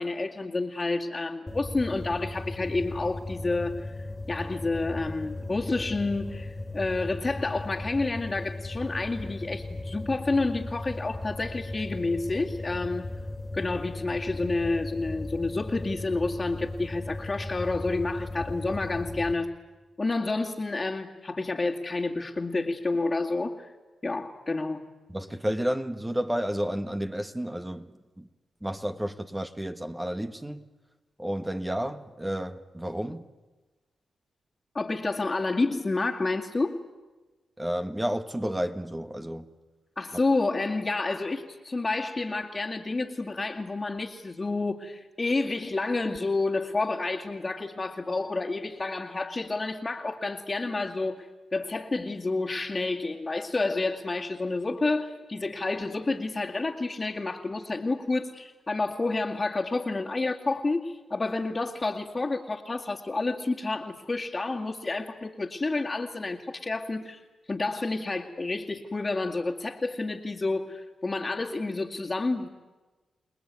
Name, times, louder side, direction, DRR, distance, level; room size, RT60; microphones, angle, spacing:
voice 1, 0.0-13.1 13.5-19.5 20.0-23.7 24.0-24.8 34.7-36.8 40.0-67.2 67.5-72.5, left 3 dB, 35° left, 2.3 m, -29 dB
sound 1, 1.5-19.3, left 2 dB, 15° left, 3.0 m, -37 dB
voice 2, 25.1-27.9 28.2-28.3 28.6-30.6 31.2-33.2 37.6-39.4, equal, 15° right, 1.7 m, -31 dB
29.0 x 19.5 x 9.6 m
supercardioid pair, 50°, 0 cm